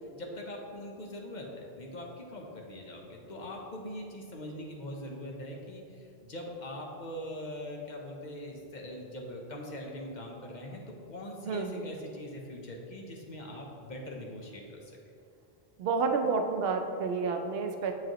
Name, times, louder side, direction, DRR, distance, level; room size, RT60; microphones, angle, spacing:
voice 1, 0.1-10.8 11.1-15.0, left 1 dB, 50° left, 0 dB, 0.8 m, -42 dB
voice 2, 11.5-11.9 15.8-17.9, right 4 dB, 75° right, 4 dB, 0.8 m, -30 dB
7.6 x 4.8 x 2.9 m, 2.5 s
omnidirectional pair, 1.0 m